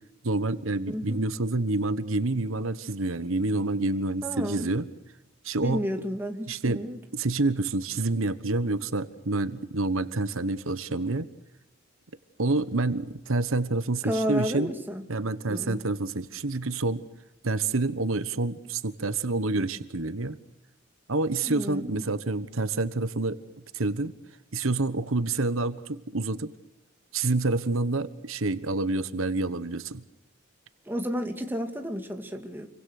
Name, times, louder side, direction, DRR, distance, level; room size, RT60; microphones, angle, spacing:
voice 1, 0.2-4.9 5.4-5.8 6.5-6.8 7.1-11.3 12.4-14.7 15.1-17.0 17.4-20.4 21.1-23.4 23.7-24.1 24.5-26.5 27.1-30.0, right 2 dB, 80° right, 13 dB, 1.3 m, -28 dB
voice 2, 0.9-1.2 4.2-4.7 5.6-7.0 14.0-15.0 15.4-15.8 21.4-22.0 30.9-32.7, equal, 10° right, 4 dB, 2.4 m, -32 dB
29.5 x 24.0 x 6.6 m, 0.83 s
head